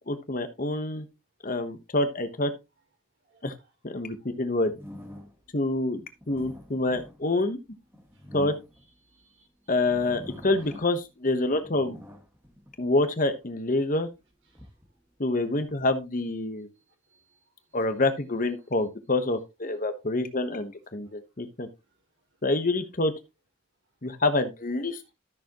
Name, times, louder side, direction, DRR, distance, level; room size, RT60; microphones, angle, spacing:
voice 1, 0.1-1.1 1.4-2.5 3.4-3.5 3.8-4.7 5.5-7.6 8.3-8.5 9.7-12.0 12.8-14.1 15.2-16.7 17.7-21.7 22.4-23.1 24.0-25.0, left 2 dB, 40° left, 1.1 m, -27 dB
sound 1, 4.7-5.5 6.0-9.2 9.7-11.1 11.4-13.3 13.9-16.0, left 1 dB, 10° right, 1.8 m, -46 dB
voice 2, 9.0-9.5 10.6-10.7 14.6-14.7 16.8-17.8, right 3 dB, 55° right, 5.7 m, -62 dB
13.5 x 7.0 x 3.0 m
head